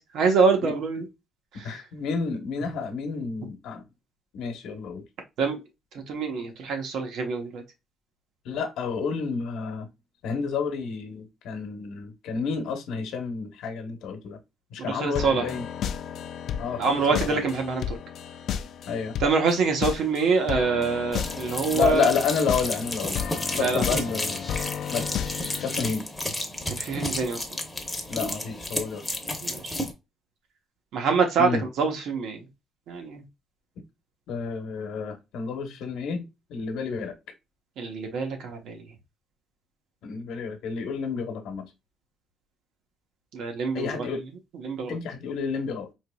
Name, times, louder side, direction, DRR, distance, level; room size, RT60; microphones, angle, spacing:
voice 1, 0.1-1.0 1.5-1.8 5.4-5.6 6.1-7.6 14.8-15.5 16.8-18.0 19.2-22.1 23.5-23.8 26.7-27.5 29.4-29.7 30.9-32.4 32.9-33.2 37.8-38.8 43.3-44.1 44.6-45.0, right 4 dB, 65° right, 1.1 m, -25 dB
voice 2, 1.6-3.8 4.3-5.0 8.4-9.9 10.2-14.4 14.7-15.7 16.6-17.4 18.9-19.2 21.7-23.2 23.6-24.4 24.9-25.1 25.6-26.1 28.1-29.1 31.4-31.7 34.3-36.2 36.5-37.1 40.0-41.6 43.7-44.2 44.9-45.9, left 5 dB, 80° left, 1.0 m, -30 dB
sound 1, 15.2-25.8, left 8 dB, 55° left, 0.3 m, -33 dB
Food Squelching, 21.1-29.9, left 1 dB, 5° left, 0.7 m, -32 dB
4.7 x 3.0 x 2.2 m
cardioid pair, 165°, 0 cm